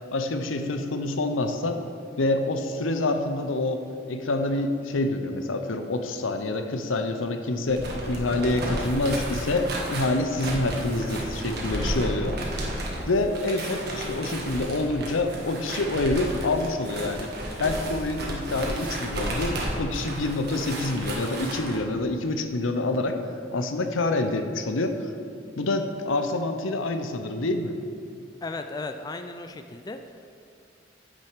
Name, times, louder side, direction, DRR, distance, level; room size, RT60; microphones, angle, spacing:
voice 1, 0.1-1.8 2.2-12.4 13.0-17.3 17.6-23.2 23.5-25.1 25.6-27.7, left 2 dB, 85° left, 7 dB, 0.7 m, -27 dB
sound 1, 7.6-21.8, right 1 dB, 55° right, 1.5 m, -33 dB
voice 2, 28.4-30.3, left 3 dB, 20° left, 7 dB, 0.3 m, -36 dB
9.1 x 7.5 x 4.9 m, 2.4 s
head